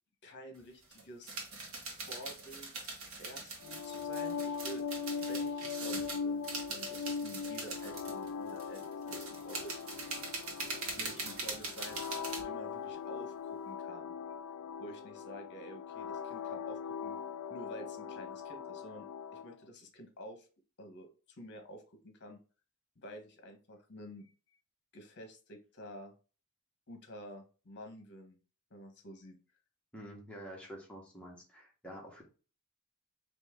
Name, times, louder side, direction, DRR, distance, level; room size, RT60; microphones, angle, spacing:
voice 1, 0.2-1.3 1.9-4.9 5.2-9.7 10.9-12.0 12.3-14.1 14.8-17.2 17.5-20.5 20.8-22.4 23.0-24.3 24.9-26.1 26.9-28.4 28.7-29.4, equal, 55° left, 5 dB, 1.1 m, -50 dB
sound 1, 0.6-0.7 0.8-12.4, right 3 dB, 65° right, 1.3 m, -42 dB
sound 2, 3.6-19.6, left 6 dB, 85° left, 0.4 m, -40 dB
voice 2, 29.9-32.2, equal, 5° left, -2 dB, 1.2 m, -48 dB
4.2 x 3.0 x 3.6 m, 0.35 s
head